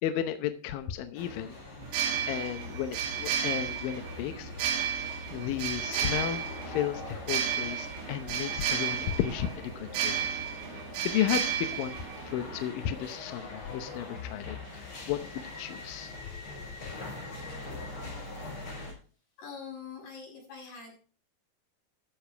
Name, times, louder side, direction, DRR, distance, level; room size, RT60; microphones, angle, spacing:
voice 1, 0.0-1.6 2.3-4.5 5.3-10.2 10.7-12.0 12.3-16.1, left 10 dB, 80° left, 9 dB, 2.0 m, -33 dB
sound 1, 1.2-18.9, left 3 dB, 30° left, 5.7 m, -43 dB
sound 2, 1.8-12.6, right 8 dB, 75° right, 3.7 m, -33 dB
voice 2, 19.4-20.9, left 6 dB, 55° left, -2 dB, 7.9 m, -43 dB
14.5 x 7.0 x 4.5 m, 0.38 s
omnidirectional pair, 5.2 m